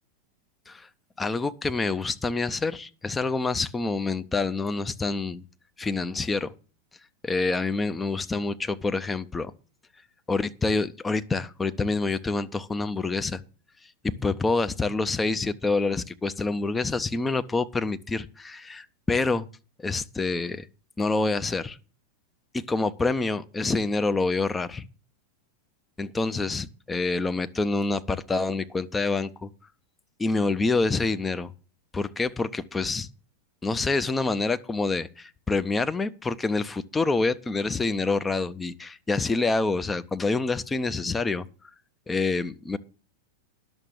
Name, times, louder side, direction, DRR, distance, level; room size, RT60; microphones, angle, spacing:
voice 1, 1.2-5.4 5.8-6.5 7.2-9.5 10.3-13.4 14.2-19.5 19.8-20.7 21.0-21.8 22.7-24.9 26.0-29.5 30.2-31.5 31.9-33.1 33.6-41.5 42.1-42.8, left 3 dB, 10° left, 0.6 m, -27 dB
11.0 x 6.7 x 7.2 m
figure-of-eight pair, 90°, 0 cm